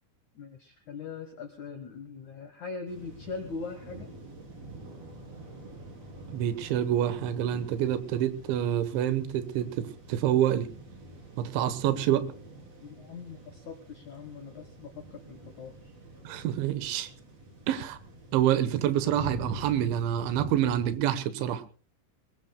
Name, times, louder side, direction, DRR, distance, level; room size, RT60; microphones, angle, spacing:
voice 1, 0.3-4.1 12.8-15.9, left 4 dB, 75° left, 5 dB, 1.7 m, -41 dB
sound 1, 2.9-21.0, right 1 dB, 35° right, 4.1 m, -46 dB
voice 2, 6.3-10.7 11.4-12.2 16.2-17.1 17.7-18.0 18.3-21.6, right 11 dB, 80° right, 12 dB, 3.4 m, -27 dB
23.0 x 21.0 x 2.2 m, 0.35 s
omnidirectional pair, 5.4 m